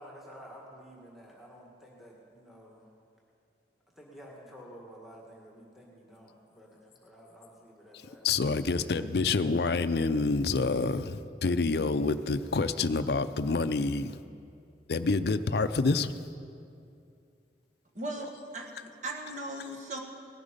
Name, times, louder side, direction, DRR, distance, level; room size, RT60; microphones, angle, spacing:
voice 1, 0.0-2.9 3.9-8.3, equal, ahead, -2 dB, 1.7 m, -51 dB
voice 2, 8.2-14.1 14.9-16.1 18.2-18.3, left 3 dB, 65° left, 11 dB, 0.5 m, -27 dB
voice 3, 18.0-20.0, right 1 dB, 45° right, 1 dB, 1.7 m, -38 dB
18.0 x 12.0 x 5.2 m, 2.5 s
head